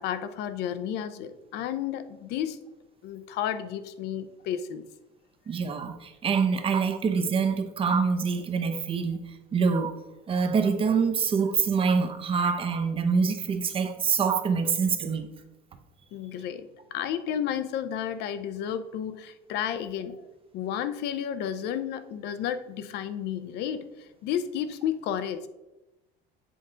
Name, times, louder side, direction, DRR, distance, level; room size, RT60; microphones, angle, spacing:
voice 1, 0.0-2.6 3.0-4.8 16.1-20.2 20.5-25.5, left 9 dB, 65° left, 12 dB, 0.6 m, -32 dB
voice 2, 5.5-9.2 9.5-9.9 10.3-15.3, right 5 dB, 30° right, 7 dB, 0.7 m, -25 dB
7.7 x 3.7 x 3.8 m, 1.0 s
cardioid pair, 130°, 19 cm